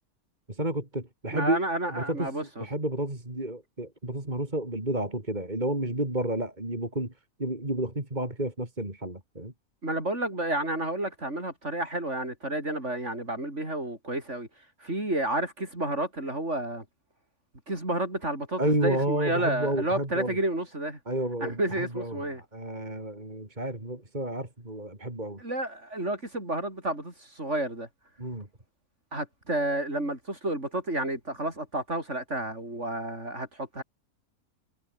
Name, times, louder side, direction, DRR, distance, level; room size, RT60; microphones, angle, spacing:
voice 1, 0.5-1.6 1.9-2.3 2.6-7.1 7.4-9.5 18.6-20.4 21.1-22.2 22.5-25.4 28.2-28.5, right 1 dB, 30° right, 4.6 m, -31 dB
voice 2, 1.3-2.7 9.8-14.5 14.8-16.8 17.7-21.0 21.4-22.4 25.4-27.9 29.1-33.8, right 1 dB, 50° right, 7.3 m, -31 dB
omnidirectional pair, 1.6 m